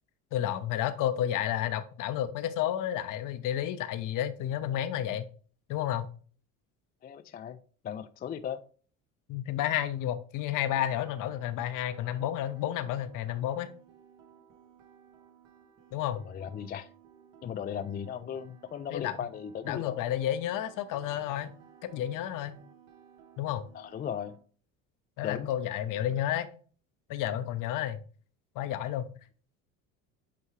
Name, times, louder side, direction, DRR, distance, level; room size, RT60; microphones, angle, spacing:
voice 1, 0.3-5.2 5.7-6.1 9.3-13.7 15.9-16.2 18.9-19.1 19.7-21.5 21.8-22.6 23.4-23.6 25.2-26.5 27.1-28.0 28.5-29.1, left 11 dB, 55° left, 11 dB, 0.8 m, -31 dB
voice 2, 7.0-7.6 7.8-8.6 16.2-16.9 17.4-20.0 23.7-24.3 25.2-25.5, left 8 dB, 25° left, 10 dB, 0.4 m, -37 dB
sound 1, 10.7-24.4, right 8 dB, 65° right, 1.5 m, -57 dB
8.4 x 3.5 x 3.1 m, 0.42 s
supercardioid pair, 90°, 37 cm